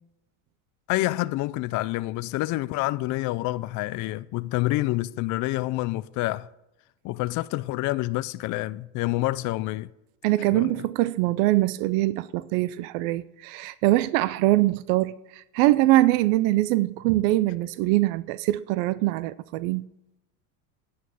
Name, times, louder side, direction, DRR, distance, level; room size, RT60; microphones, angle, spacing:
voice 1, 0.9-6.5 7.0-9.9 10.5-10.9, left 18 dB, 50° left, 0.4 m, -28 dB
voice 2, 10.2-19.9, right 17 dB, 75° right, 0.5 m, -23 dB
9.5 x 6.2 x 8.1 m
supercardioid pair, 105°, 40 cm